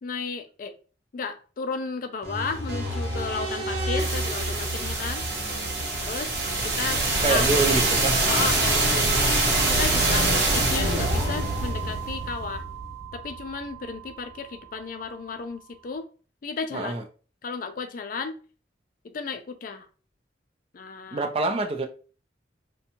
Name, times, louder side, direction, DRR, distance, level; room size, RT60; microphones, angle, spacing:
voice 1, 0.0-0.7 1.1-5.3 6.0-7.4 8.3-9.2 9.7-12.6 13.1-16.1 16.4-16.9 17.4-18.4 19.0-19.9 20.7-21.3, left 4 dB, 50° left, 0.4 m, -33 dB
sound 1, 2.2-14.1, right 2 dB, 60° right, 0.9 m, -25 dB
voice 2, 7.2-8.2 16.7-17.0 21.1-21.9, right 3 dB, 30° right, 0.4 m, -26 dB
2.6 x 2.2 x 2.8 m
head